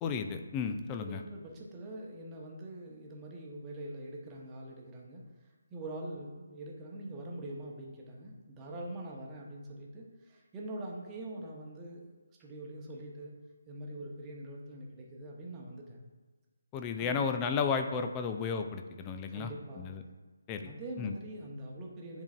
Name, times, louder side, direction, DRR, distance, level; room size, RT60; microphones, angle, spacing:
voice 1, 0.0-1.2 16.7-19.5 19.8-20.0 20.5-20.7 21.0-21.1, left 6 dB, 20° left, 6 dB, 0.4 m, -33 dB
voice 2, 1.0-5.2 5.7-12.1 12.4-13.3 13.7-16.0 17.0-17.3 19.3-19.9 20.6-22.2, right 1 dB, 15° right, -2 dB, 0.9 m, -44 dB
10.0 x 3.8 x 2.5 m, 1.3 s
figure-of-eight pair, 145°, 0 cm